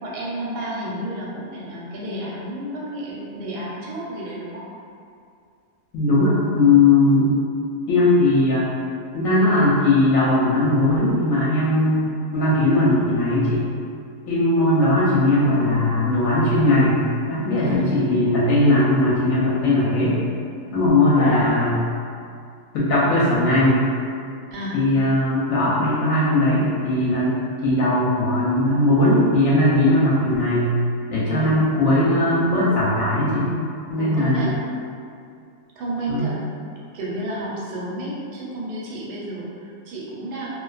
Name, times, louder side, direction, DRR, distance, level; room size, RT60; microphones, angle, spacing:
voice 1, 0.0-4.6 17.6-18.3 24.5-24.8 31.3-31.5 34.0-34.5 35.8-36.4 36.9-40.5, right 1 dB, 85° right, -5 dB, 1.1 m, -31 dB
voice 2, 5.9-7.3 7.9-8.7 9.1-13.7 14.3-17.0 17.3-20.2 20.7-21.8 22.7-23.8 24.7-30.7 31.1-33.5 33.9-34.5 36.1-36.3, left 2 dB, 70° left, -7 dB, 0.9 m, -19 dB
2.4 x 2.4 x 2.3 m, 2.4 s
omnidirectional pair, 1.7 m